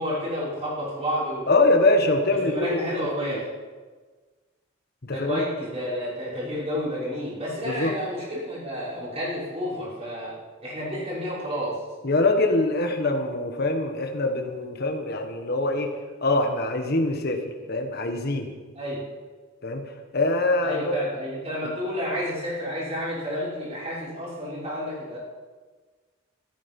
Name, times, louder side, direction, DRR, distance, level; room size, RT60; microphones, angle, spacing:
voice 1, 0.0-1.5 2.5-3.5 5.1-10.3 10.6-11.7 18.7-19.0 20.6-25.2, equal, 30° right, -7 dB, 5.9 m, -30 dB
voice 2, 1.5-2.9 3.2-3.4 5.0-5.4 7.6-7.9 12.0-15.9 16.2-17.4 17.7-18.5 19.6-19.8 20.1-21.0, left 2 dB, 50° left, 4 dB, 1.3 m, -23 dB
14.5 x 13.5 x 5.4 m, 1.4 s
head